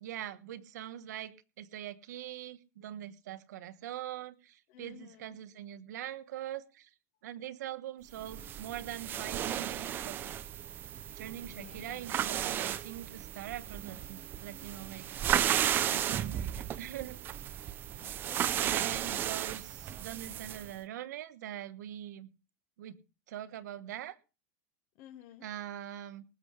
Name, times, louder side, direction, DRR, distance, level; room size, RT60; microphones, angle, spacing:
voice 1, 0.0-6.9 7.2-10.4 11.1-15.2 15.9-17.2 18.6-22.3 22.8-23.0 23.3-24.2 25.4-26.2, right 12 dB, 90° right, 12 dB, 1.3 m, -43 dB
voice 2, 4.7-5.4 11.4-12.1 16.4-16.7 18.0-18.7 24.9-25.5, left 10 dB, 40° left, 5 dB, 1.5 m, -54 dB
sound 1, 8.2-20.7, right 10 dB, 20° right, 0.6 m, -34 dB
19.5 x 7.7 x 4.9 m, 0.32 s
supercardioid pair, 170°, 9 cm